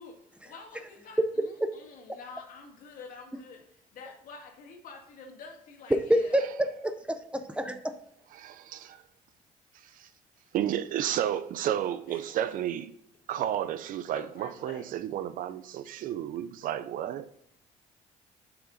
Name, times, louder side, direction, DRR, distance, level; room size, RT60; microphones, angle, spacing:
voice 1, 0.4-6.4 12.1-12.5 13.4-13.5 14.1-14.9, left 5 dB, 70° left, 1.9 m, -48 dB
voice 2, 5.9-7.9, equal, 10° right, 0.6 m, -27 dB
voice 3, 8.4-9.0 10.0-10.1 10.5-12.8 13.3-17.3, right 11 dB, 70° right, 0.6 m, -32 dB
7.4 x 5.9 x 3.8 m
cardioid pair, 105°, 15 cm